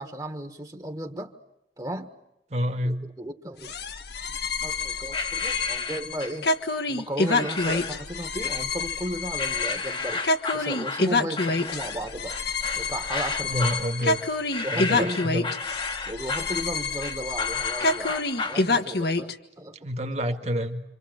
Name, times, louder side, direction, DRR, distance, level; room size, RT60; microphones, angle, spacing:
voice 1, 0.0-1.3 1.8-2.1 2.8-3.7 4.6-6.5 6.9-10.2 10.5-12.4 12.7-13.7 14.6-15.3 16.0-19.8, right 1 dB, 20° right, 7 dB, 1.6 m, -35 dB
voice 2, 2.5-3.0 13.4-14.2 14.7-15.5 19.8-20.8, equal, 40° right, 6 dB, 2.0 m, -28 dB
sound 1, 3.6-19.3, left 3 dB, 65° left, 1.5 m, -28 dB
sound 2, 5.1-6.4 7.2-8.0 8.4-9.0 9.4-18.7, left 4 dB, 30° left, 1.3 m, -33 dB
27.5 x 26.5 x 8.0 m, 0.86 s
head